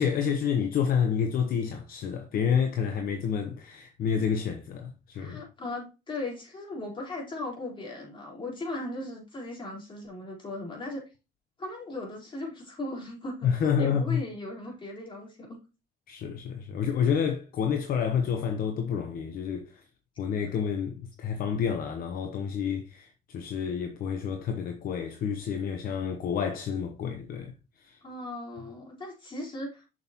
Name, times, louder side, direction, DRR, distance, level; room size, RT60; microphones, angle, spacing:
voice 1, 0.0-5.4 13.4-14.2 16.1-19.8 20.2-27.5 27.8-28.0, left 7 dB, 60° left, 0.9 m, -29 dB
voice 2, 5.1-11.0 11.6-15.6 28.0-29.8, left 2 dB, 30° left, 3.9 m, -38 dB
7.1 x 6.5 x 2.9 m
cardioid pair, 110°, 17 cm